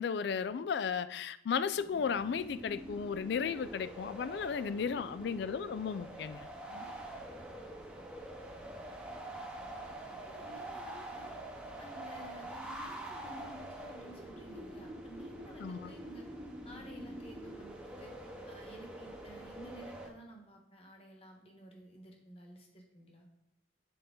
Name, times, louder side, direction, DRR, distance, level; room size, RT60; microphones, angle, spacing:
voice 1, 0.0-6.5 15.6-15.9, left 6 dB, 65° left, 0.3 m, -34 dB
sound 1, 1.7-20.1, right 1 dB, 5° right, 0.8 m, -46 dB
voice 2, 4.8-5.4 6.7-7.0 10.3-11.4 11.8-16.3 16.6-18.1 18.5-23.3, right 1 dB, 30° left, 1.2 m, -53 dB
7.7 x 4.3 x 3.7 m
head